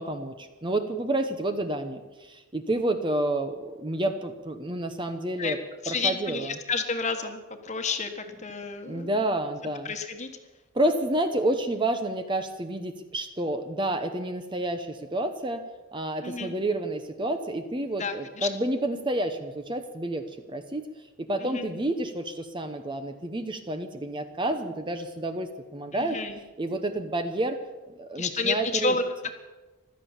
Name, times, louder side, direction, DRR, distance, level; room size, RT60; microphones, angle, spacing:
voice 1, 0.0-5.6 5.9-6.5 8.9-9.9 10.7-15.7 15.9-20.9 21.2-26.2 26.6-27.6 27.9-28.9, right 1 dB, 20° right, 8 dB, 0.9 m, -29 dB
voice 2, 5.8-9.2 9.8-10.3 16.2-16.5 18.0-18.5 21.4-21.7 25.9-26.4 28.1-29.3, left 4 dB, 30° left, 6 dB, 1.4 m, -30 dB
16.0 x 12.5 x 7.2 m, 1.2 s
head